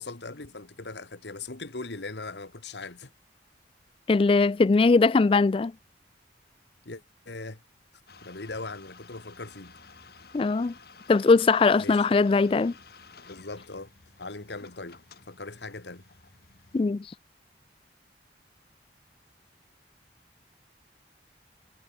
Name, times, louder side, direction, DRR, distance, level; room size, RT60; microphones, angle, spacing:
voice 1, 0.0-3.1 6.8-7.6 8.2-9.8 11.8-12.1 13.3-13.9 14.2-15.0 15.3-16.1, left 3 dB, 75° left, 1.8 m, -39 dB
voice 2, 4.1-5.7 10.3-10.7 11.1-12.7 16.7-17.1, left 4 dB, 30° left, 0.3 m, -20 dB
sound 1, 8.1-16.8, left 4 dB, 60° left, 2.0 m, -53 dB
head